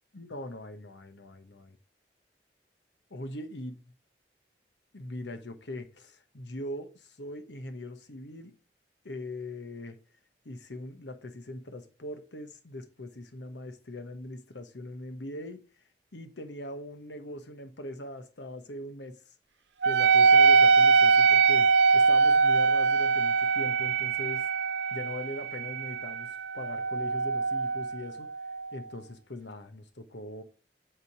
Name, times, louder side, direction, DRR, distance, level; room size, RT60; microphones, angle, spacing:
voice 1, 0.1-1.8 3.1-3.8 4.9-8.5 9.0-10.0 10.4-15.6 16.1-19.2 19.8-24.5 24.9-28.3 28.7-30.4, left 1 dB, 85° left, 1.1 m, -41 dB
Wind instrument woodwind instrument, 19.8-28.8, right 5 dB, 90° right, 0.6 m, -23 dB
8.5 x 3.7 x 4.8 m
head